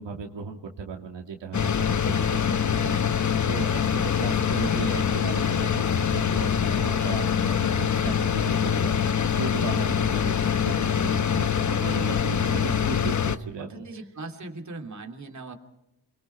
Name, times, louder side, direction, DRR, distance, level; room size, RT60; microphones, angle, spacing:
voice 1, 0.0-5.8 6.1-13.8, right 5 dB, 75° right, 2 dB, 2.6 m, -37 dB
sound 1, 1.5-13.4, left 7 dB, 40° left, 1.1 m, -24 dB
voice 2, 13.6-15.5, right 3 dB, 40° right, 4 dB, 2.9 m, -39 dB
28.5 x 22.5 x 4.5 m, 0.87 s
cardioid pair, 85°, 44 cm